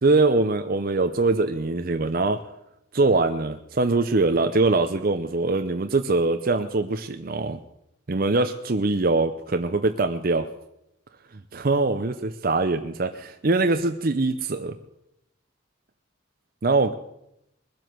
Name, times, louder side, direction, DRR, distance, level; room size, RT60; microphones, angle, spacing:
voice 1, 0.0-2.4 2.9-7.6 8.1-10.5 11.5-14.7 16.6-16.9, right 3 dB, 45° right, 7 dB, 0.6 m, -23 dB
21.0 x 7.8 x 6.6 m, 0.82 s
head